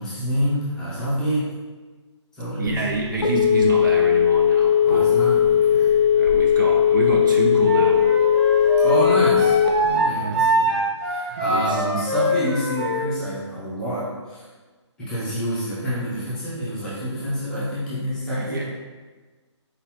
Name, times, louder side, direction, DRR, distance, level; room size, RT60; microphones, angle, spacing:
voice 1, 0.0-1.5 2.3-2.8 4.8-5.9 8.8-10.8 11.0-14.4 15.0-18.6, equal, 5° left, -11 dB, 0.7 m, -27 dB
voice 2, 2.6-5.1 6.1-8.1 10.1-10.5 11.4-11.9 18.4-18.6, right 3 dB, 45° right, 1 dB, 0.4 m, -27 dB
Telephone, 2.7-10.0, left 9 dB, 60° left, 0.6 m, -18 dB
Wind instrument woodwind instrument, 7.6-13.1, right 2 dB, 25° right, 1.1 m, -24 dB
4.3 x 3.8 x 2.9 m, 1.3 s
hypercardioid pair, 170°, 15 cm